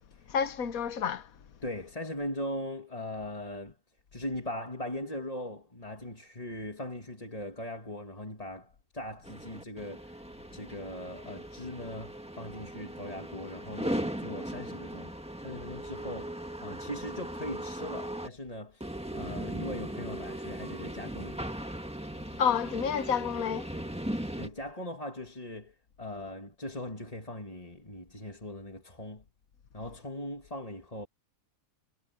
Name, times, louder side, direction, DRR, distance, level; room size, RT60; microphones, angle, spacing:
voice 1, 0.3-1.3 22.4-23.7, left 7 dB, 80° left, 1.5 m, -29 dB
voice 2, 1.6-3.8 4.1-10.2 10.5-21.5 24.4-29.2 29.7-31.1, left 1 dB, 25° left, 2.4 m, -40 dB
sound 1, 9.2-18.3 18.8-24.5, right 1 dB, 5° right, 1.6 m, -38 dB
omnidirectional pair, 1.5 m